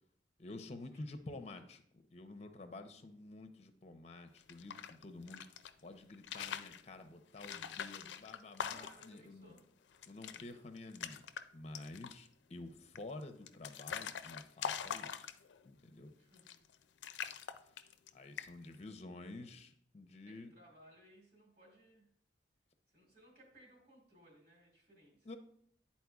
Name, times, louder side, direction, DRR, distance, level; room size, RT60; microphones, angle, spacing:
voice 1, 0.4-5.4 5.8-9.5 10.1-11.3 11.5-15.3 15.6-16.1 18.1-20.5 25.2-25.4, left 2 dB, 40° left, 8 dB, 0.6 m, -50 dB
sound 1, 4.4-5.7 6.1-6.8 7.4-9.2 9.6-9.7 9.9-10.4 10.7-11.4 11.7-12.3 12.9-15.7 16.3-16.7 17.0-18.1 18.4-18.7, left 8 dB, 85° left, 0.4 m, -43 dB
voice 2, 8.7-9.7 10.2-10.7 16.2-16.6 19.3-19.5 20.3-22.1 22.9-25.4, right 1 dB, 60° right, -2 dB, 2.1 m, -63 dB
10.5 x 4.2 x 2.3 m, 0.66 s
head